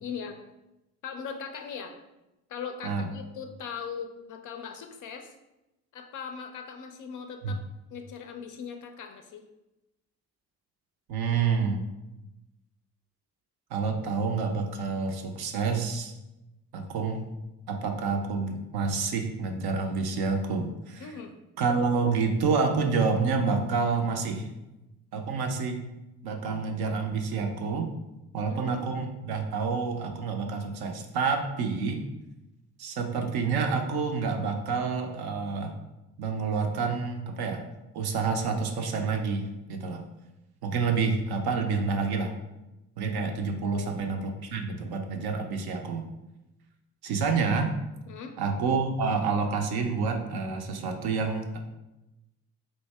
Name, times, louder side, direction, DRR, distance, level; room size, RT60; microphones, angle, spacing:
voice 1, 0.0-0.4 1.0-2.0 2.5-5.3 5.9-7.6 7.9-9.4 21.0-21.3 28.5-28.9 43.6-43.9 48.1-48.4, left 6 dB, 40° left, 5 dB, 0.4 m, -39 dB
voice 2, 11.1-11.8 13.7-16.1 16.7-17.3 17.7-21.1 21.6-24.5 25.1-25.8 26.2-27.9 28.3-32.0 32.8-35.8 36.2-37.6 37.9-40.0 40.6-42.3 43.0-46.1 47.0-47.7 48.4-51.6, right 4 dB, 50° right, 5 dB, 0.6 m, -28 dB
3.2 x 2.6 x 3.2 m, 0.97 s
figure-of-eight pair, 40°, 48 cm